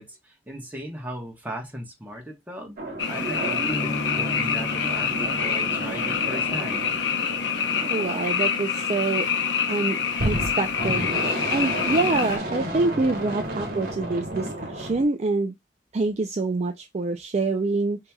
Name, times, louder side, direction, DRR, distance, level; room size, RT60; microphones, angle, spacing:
voice 1, 0.0-2.7 3.1-7.0, right 1 dB, 10° right, 1.2 m, -37 dB
sound 1, 2.8-9.1 10.1-15.1, right 1 dB, 55° right, 1.3 m, -33 dB
Frog, 3.0-12.4, left 6 dB, 65° left, 0.8 m, -26 dB
Bass guitar, 3.7-7.1, left 1 dB, 25° left, 1.2 m, -36 dB
voice 2, 7.9-9.3 9.7-10.0 10.2-15.5 15.9-18.0, right 3 dB, 35° right, 0.4 m, -26 dB
5.4 x 2.8 x 2.3 m
head